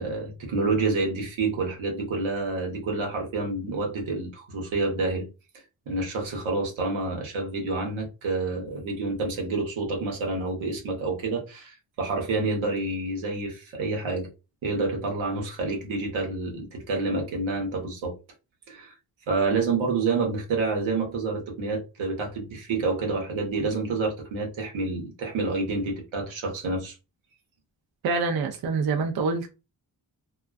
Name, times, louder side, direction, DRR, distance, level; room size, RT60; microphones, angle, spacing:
voice 1, 0.0-5.3 5.9-14.3 14.6-18.2 18.7-18.9 19.3-26.9, right 3 dB, 75° right, 1.0 m, -28 dB
voice 2, 28.0-29.5, right 4 dB, 50° right, 0.6 m, -26 dB
2.4 x 2.2 x 2.3 m
supercardioid pair, 45°, 47 cm